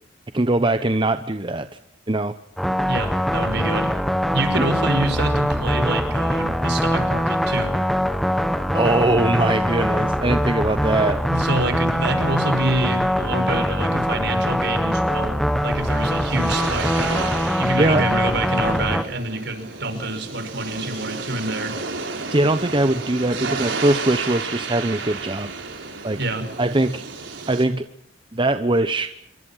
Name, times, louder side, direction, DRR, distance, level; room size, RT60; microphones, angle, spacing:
voice 1, 0.3-1.7 2.1-2.3 4.6-4.7 8.7-11.2 17.8-18.0 22.3-25.5 26.0-26.2 26.6-27.0 27.5-27.8 28.3-29.1, right 2 dB, 25° right, 9 dB, 1.0 m, -21 dB
sound 1, 2.6-19.0, equal, ahead, 1.2 m, -22 dB
voice 2, 2.9-3.9 4.3-7.7 11.3-17.1 17.6-21.7 26.2-26.5, right 2 dB, 65° right, 9 dB, 5.4 m, -26 dB
sound 2, 15.4-27.6, right 4 dB, 80° right, 5.1 m, -32 dB
27.5 x 23.5 x 5.8 m, 0.71 s
head